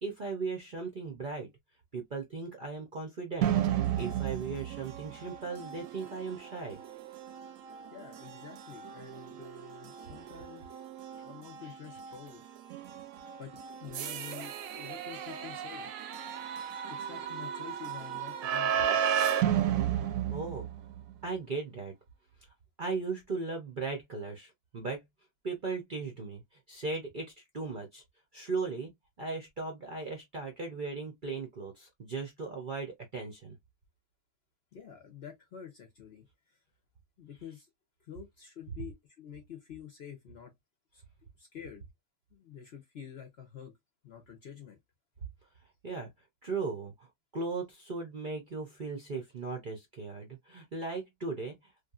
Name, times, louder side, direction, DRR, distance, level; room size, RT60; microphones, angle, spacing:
voice 1, 0.0-1.5 1.9-3.6 4.0-6.8 19.9-20.7 21.2-21.9 22.8-25.0 25.4-26.4 26.7-28.0 28.3-28.9 29.2-33.6 45.8-46.1 46.4-47.1 47.3-51.7, right 4 dB, 50° right, 0.6 m, -37 dB
sound 1, 3.4-21.1, right 10 dB, 70° right, 0.9 m, -34 dB
voice 2, 7.9-10.9 11.2-12.4 12.9-13.0 13.4-13.5 13.8-15.9 16.9-19.0 34.7-36.6 37.2-37.7 38.0-40.5 40.9-41.0 41.4-41.8 42.3-43.7 44.0-44.8, left 8 dB, 55° left, 0.7 m, -48 dB
3.2 x 2.5 x 2.3 m
omnidirectional pair, 1.7 m